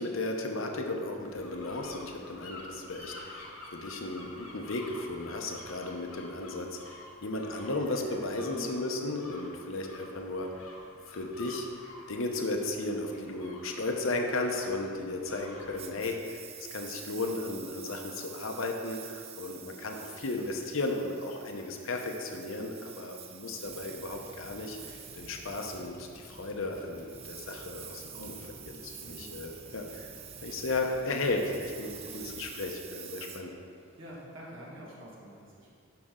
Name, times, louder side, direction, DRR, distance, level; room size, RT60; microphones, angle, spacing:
voice 1, 0.0-10.6 11.1-11.7 12.1-28.3 28.6-30.1 30.4-33.6, left 2 dB, 65° left, 3 dB, 0.9 m, -35 dB
sound 1, 1.2-16.1, left 2 dB, 90° left, 1.5 m, -49 dB
Engine, 15.8-34.2, right 9 dB, 25° right, 0.3 m, -48 dB
sound 2, 23.6-32.4, equal, 35° left, 1.2 m, -53 dB
voice 2, 28.1-28.5 29.0-29.4 31.9-32.2 34.0-35.7, equal, 60° right, -5 dB, 1.7 m, -47 dB
10.5 x 5.8 x 3.8 m, 2.3 s
head